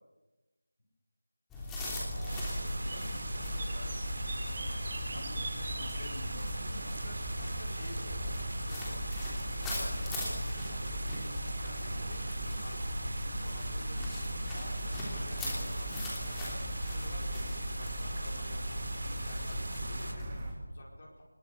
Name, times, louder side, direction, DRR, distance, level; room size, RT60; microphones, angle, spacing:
sound 1, 1.5-20.5, equal, 5° left, 3.2 m, -37 dB
voice 1, 1.9-4.0 5.1-7.1, left 1 dB, 65° left, 2 dB, 7.3 m, -49 dB
sound 2, 1.9-20.5, right 2 dB, 30° right, 2.8 m, -43 dB
sound 3, 2.3-20.1, right 1 dB, 60° right, 3.5 m, -43 dB
voice 2, 6.8-8.4 8.7-10.2 10.7-14.0 14.5-17.4 17.7-21.2, left 1 dB, 40° left, -2 dB, 4.9 m, -51 dB
21.0 x 20.5 x 6.9 m, 1.1 s
figure-of-eight pair, 165°, 0 cm